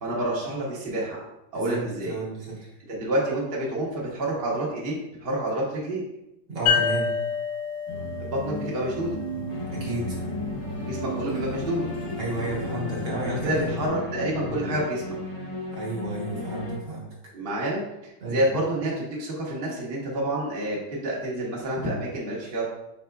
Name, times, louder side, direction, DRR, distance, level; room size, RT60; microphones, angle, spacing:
voice 1, 0.0-1.2 1.5-2.2 2.9-4.9 5.2-6.0 8.2-9.2 10.9-11.8 13.2-15.1 17.3-22.7, right 1 dB, 35° right, -5 dB, 1.0 m, -28 dB
voice 2, 1.5-2.8 6.5-7.1 9.7-10.2 12.2-13.9 14.4-14.7 15.4-17.1 18.2-18.4, right 2 dB, 60° right, -5 dB, 1.7 m, -33 dB
sound 1, 6.7-10.1, left 6 dB, 85° left, 1.6 m, -28 dB
sound 2, 7.9-13.9, equal, 65° left, 1.4 m, -35 dB
sound 3, 9.5-16.8, left 3 dB, 40° left, 1.3 m, -35 dB
5.6 x 4.2 x 2.3 m, 0.88 s
omnidirectional pair, 2.2 m